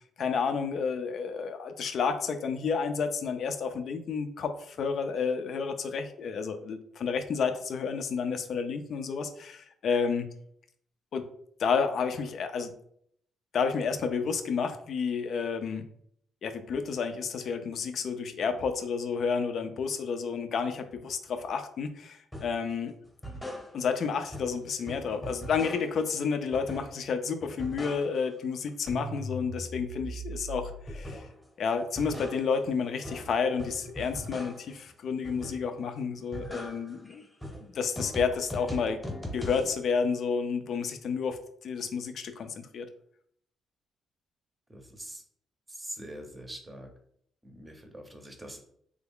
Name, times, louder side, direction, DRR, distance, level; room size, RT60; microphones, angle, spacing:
voice 1, 0.2-10.3 11.1-11.3 11.6-12.7 13.5-15.9 16.4-23.0 23.7-31.3 31.6-37.2 37.6-39.0 39.3-42.9, left 5 dB, 60° left, 8 dB, 0.4 m, -30 dB
sound 1, 22.3-22.6 23.0-24.0 24.3-26.1 26.5-27.1 27.4-28.4 28.7-31.4 31.8-34.8 35.2-35.8 36.1-39.8, equal, 10° left, 0.9 m, -40 dB
voice 2, 44.7-45.2 45.8-46.9 47.4-48.7, equal, 20° right, 3 dB, 0.7 m, -43 dB
3.3 x 2.3 x 3.5 m, 0.67 s
cardioid pair, 90°, 0 cm